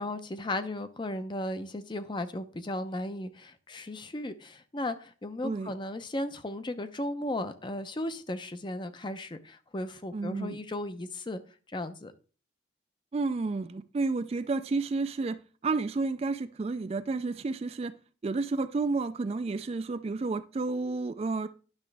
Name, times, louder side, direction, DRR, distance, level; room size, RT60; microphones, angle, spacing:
voice 1, 0.0-11.4 11.7-12.1, left 1 dB, 25° left, 10 dB, 0.6 m, -35 dB
voice 2, 10.1-10.6 13.1-17.9 18.2-21.5, right 3 dB, 35° right, 12 dB, 0.3 m, -31 dB
10.5 x 6.0 x 3.3 m, 0.39 s
head